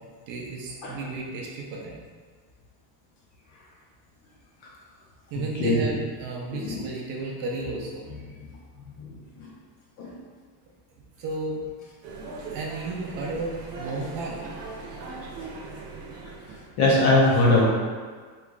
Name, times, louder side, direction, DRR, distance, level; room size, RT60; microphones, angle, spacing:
voice 1, 0.3-2.0 5.3-8.0 11.2-11.7 12.5-14.4, right 3 dB, 45° right, -2 dB, 0.5 m, -33 dB
voice 2, 5.5-5.8 6.5-6.8 8.1-8.2 9.0-9.1 9.4-9.5 10.0-10.1 16.8-17.7, left 2 dB, 40° left, -4 dB, 0.4 m, -21 dB
sound 1, 12.0-16.8, right 3 dB, 80° right, 0.9 m, -39 dB
3.1 x 2.3 x 3.7 m, 1.5 s
cardioid pair, 170°, 49 cm